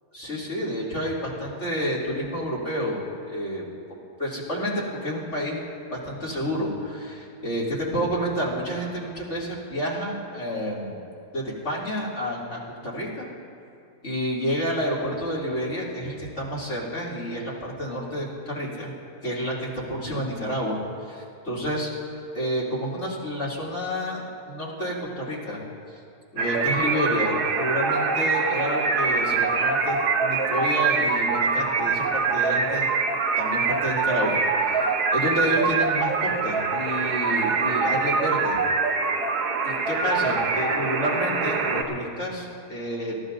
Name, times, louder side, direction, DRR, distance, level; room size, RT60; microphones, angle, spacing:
voice 1, 0.1-3.6 4.2-11.0 11.3-13.3 14.0-18.9 19.2-20.8 21.1-21.9 22.3-25.6 26.3-32.9 33.4-34.4 34.7-34.8 35.1-38.6 39.6-43.2, equal, 45° left, -7 dB, 3.2 m, -29 dB
sound 1, 26.4-41.8, right 4 dB, 75° right, 1.6 m, -24 dB
28.0 x 14.5 x 2.7 m, 2.5 s
omnidirectional pair, 1.7 m